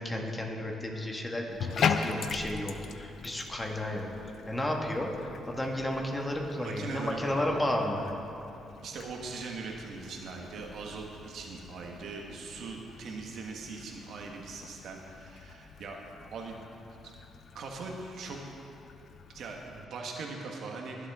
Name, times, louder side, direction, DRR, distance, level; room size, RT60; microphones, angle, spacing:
voice 1, 0.0-8.0, left 1 dB, 20° left, 1 dB, 1.6 m, -33 dB
Bathtub (filling or washing), 1.5-19.8, left 6 dB, 60° left, 0.6 m, -40 dB
voice 2, 6.6-7.7 8.8-16.0 16.3-16.6 17.5-18.4 19.3-21.1, right 4 dB, 70° right, 1 dB, 1.4 m, -40 dB
22.0 x 7.6 x 3.7 m, 2.8 s
cardioid pair, 90°, 0 cm